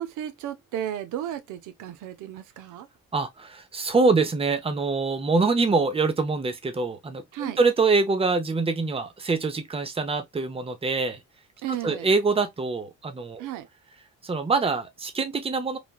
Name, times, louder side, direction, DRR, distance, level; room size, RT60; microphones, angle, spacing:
voice 1, 0.0-2.9 7.3-7.6 11.6-12.1 13.4-13.7, right 11 dB, 85° right, 0.6 m, -34 dB
voice 2, 3.1-11.2 11.7-13.5 14.2-15.8, right 4 dB, 20° right, 0.7 m, -25 dB
3.3 x 2.4 x 2.3 m
cardioid pair, 90°, 30 cm